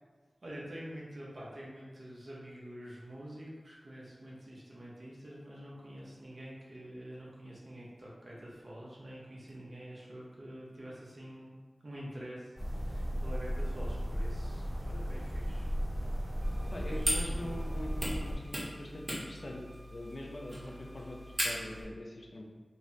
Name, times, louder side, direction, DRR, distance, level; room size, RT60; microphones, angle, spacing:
voice 1, 0.4-15.7 16.7-17.5 20.5-20.9, equal, 60° right, -5 dB, 1.0 m, -47 dB
sound 1, 12.6-18.3, equal, 5° right, 1.0 m, -35 dB
sound 2, 16.4-21.8, equal, 35° right, 1.3 m, -39 dB
voice 2, 16.7-19.6 19.9-22.4, left 1 dB, 55° left, -1 dB, 0.6 m, -43 dB
3.1 x 2.2 x 4.0 m, 1.4 s
cardioid pair, 45°, 0 cm